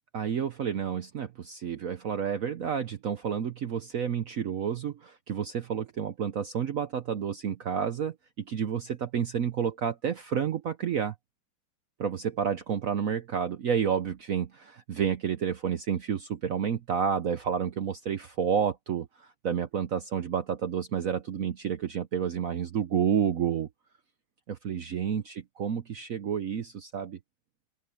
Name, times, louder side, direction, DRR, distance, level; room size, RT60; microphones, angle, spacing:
voice 1, 0.1-11.1 12.0-23.7 24.5-27.2, right 8 dB, 65° right, 0.8 m, -30 dB
open air
omnidirectional pair, 2.3 m